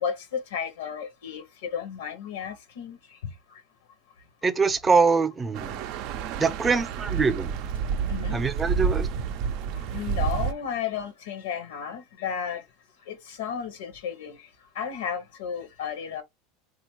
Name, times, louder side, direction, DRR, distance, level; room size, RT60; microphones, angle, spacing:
voice 1, 0.0-3.0 8.1-8.4 9.9-12.6 13.1-14.4 14.7-16.2, left 7 dB, 90° left, 0.7 m, -33 dB
voice 2, 4.4-5.8 6.4-7.5 8.3-9.1, right 4 dB, 20° right, 0.6 m, -23 dB
sound 1, 5.5-10.5, right 7 dB, 65° right, 0.4 m, -29 dB
3.7 x 2.4 x 2.9 m
supercardioid pair, 110°, 0 cm